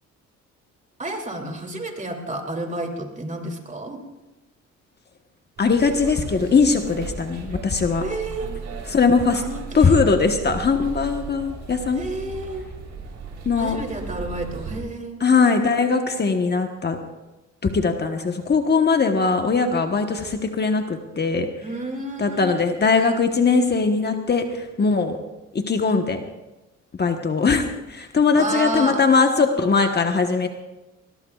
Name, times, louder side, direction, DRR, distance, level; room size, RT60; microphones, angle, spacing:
voice 1, 1.0-4.0 8.0-8.5 9.4-10.0 11.9-12.6 13.6-15.2 21.6-22.6 28.3-29.0, right 2 dB, 25° right, 2 dB, 2.9 m, -30 dB
voice 2, 5.6-8.0 8.9-9.4 9.7-12.0 13.4-13.8 15.2-17.0 17.6-21.5 22.2-25.2 25.5-26.2 27.0-30.5, left 4 dB, 35° left, 5 dB, 1.2 m, -20 dB
sound 1, 5.6-14.8, right 4 dB, 70° right, 3.8 m, -36 dB
20.5 x 20.5 x 2.4 m, 1.1 s
cardioid pair, 90°, 30 cm